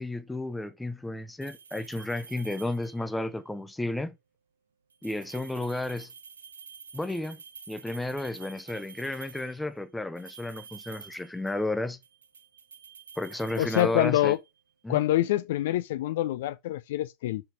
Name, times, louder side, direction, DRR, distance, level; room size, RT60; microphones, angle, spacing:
voice 1, 0.0-4.1 5.0-6.1 6.9-7.4 7.7-12.0 13.2-14.4 14.8-15.0, left 2 dB, 5° left, 0.8 m, -32 dB
sound 1, 1.4-3.2 4.9-9.6 10.2-11.7 12.0-14.5, right 6 dB, 70° right, 0.8 m, -48 dB
voice 2, 13.6-14.4 14.9-17.4, left 15 dB, 55° left, 0.4 m, -26 dB
5.7 x 5.7 x 5.0 m
figure-of-eight pair, 90°, 0 cm